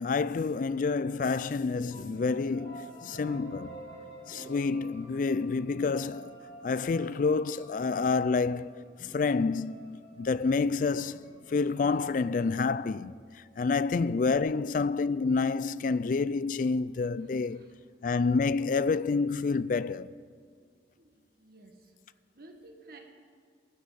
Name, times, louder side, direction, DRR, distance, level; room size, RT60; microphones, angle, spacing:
voice 1, 0.0-3.7 4.3-6.3 6.6-8.8 9.1-11.2 11.5-13.1 13.6-17.6 18.0-20.1, left 4 dB, 45° left, 0.3 m, -28 dB
sound 1, 1.7-13.5, right 1 dB, 80° left, 3.2 m, -49 dB
voice 2, 17.2-17.7 21.0-21.9 22.3-23.0, right 2 dB, 55° right, 1.8 m, -54 dB
20.0 x 12.0 x 4.1 m
head